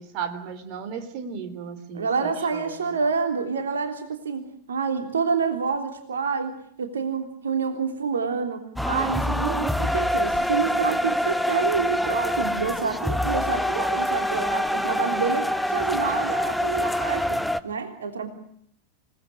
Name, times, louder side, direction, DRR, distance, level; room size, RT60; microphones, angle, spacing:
voice 1, 0.0-3.0, right 6 dB, 45° right, 9 dB, 3.5 m, -35 dB
voice 2, 1.9-18.3, right 5 dB, 70° right, 6 dB, 3.4 m, -28 dB
sound 1, 8.8-17.6, left 1 dB, ahead, 1.2 m, -25 dB
28.5 x 19.5 x 9.7 m, 0.71 s
figure-of-eight pair, 90°, 0 cm